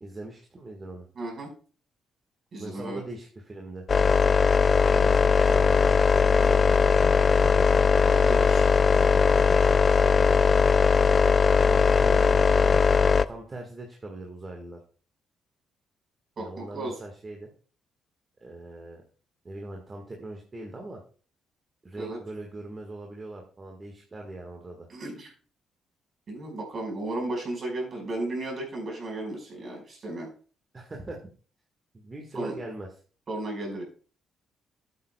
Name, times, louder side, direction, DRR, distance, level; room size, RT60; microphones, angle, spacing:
voice 1, 0.0-1.1 2.6-3.8 4.9-7.6 11.5-12.8 13.2-14.8 16.4-17.5 18.4-19.0 19.4-21.0 21.8-24.9 30.7-31.2 31.9-32.9, right 2 dB, 30° right, 1 dB, 1.7 m, -40 dB
voice 2, 1.1-1.5 2.5-3.0 7.9-9.1 16.4-17.0 22.0-22.2 24.9-25.3 26.3-30.3 32.3-32.5 33.3-33.8, right 2 dB, 50° right, 0 dB, 5.0 m, -34 dB
sound 1, 3.9-13.2, left 5 dB, 40° left, 0.4 m, -20 dB
13.5 x 8.5 x 2.3 m, 0.39 s
cardioid pair, 90°, 0 cm